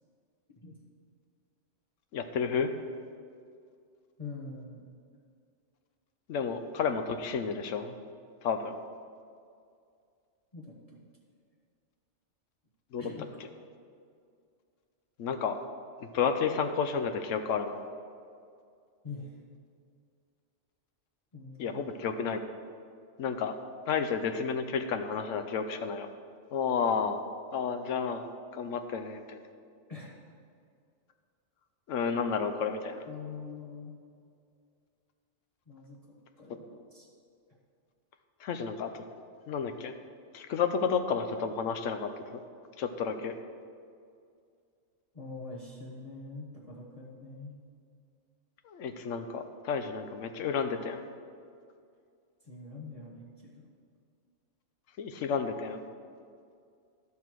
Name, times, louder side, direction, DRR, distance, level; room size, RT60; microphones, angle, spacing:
voice 1, 2.1-2.7 6.3-8.0 8.4-8.7 12.9-13.0 15.2-15.6 16.0-17.8 21.6-22.4 23.2-23.5 23.9-26.1 26.5-27.2 27.5-29.4 31.9-33.0 38.4-39.0 39.5-39.9 40.3-42.4 42.8-43.3 48.6-51.1 55.0-55.8, left 6 dB, 85° left, 8 dB, 1.0 m, -31 dB
voice 2, 4.2-4.9 10.5-11.0 13.0-13.3 19.0-19.4 21.3-21.9 29.9-30.1 33.1-34.0 35.7-36.0 36.4-37.1 45.1-47.6 52.4-53.7, left 3 dB, 30° left, -4 dB, 1.0 m, -44 dB
12.0 x 5.9 x 4.6 m, 2.3 s
omnidirectional pair, 1.3 m